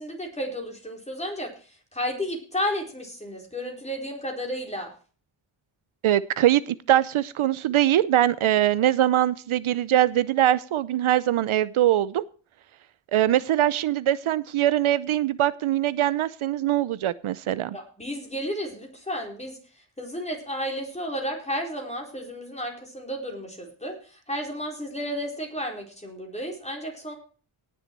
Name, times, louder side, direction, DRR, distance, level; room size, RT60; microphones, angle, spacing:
voice 1, 0.0-4.9 17.7-27.1, equal, 15° left, 1 dB, 4.3 m, -32 dB
voice 2, 6.0-12.2 13.1-17.8, right 12 dB, 75° right, 16 dB, 0.7 m, -22 dB
18.0 x 7.2 x 4.6 m, 0.39 s
wide cardioid pair, 135°, 49 cm